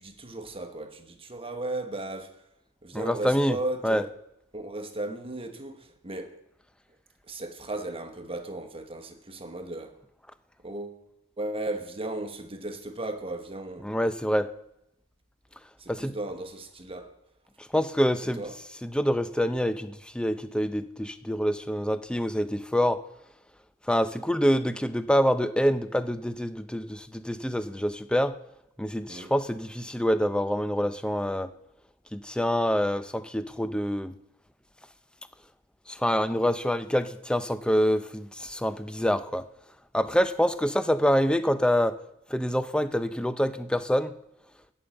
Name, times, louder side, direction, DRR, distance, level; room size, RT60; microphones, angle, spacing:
voice 1, 0.0-2.4 2.8-4.1 4.5-6.4 7.3-10.0 10.6-11.0 11.4-13.9 15.8-17.2 18.3-18.6 29.1-29.3, right 2 dB, 25° right, 1.2 m, -36 dB
voice 2, 2.9-4.1 13.8-14.5 15.9-16.1 17.6-23.0 23.9-28.3 28.8-31.5 32.1-34.2 35.9-39.5 39.9-42.0 42.3-44.1, equal, 5° left, 0.5 m, -26 dB
13.5 x 5.5 x 8.8 m
head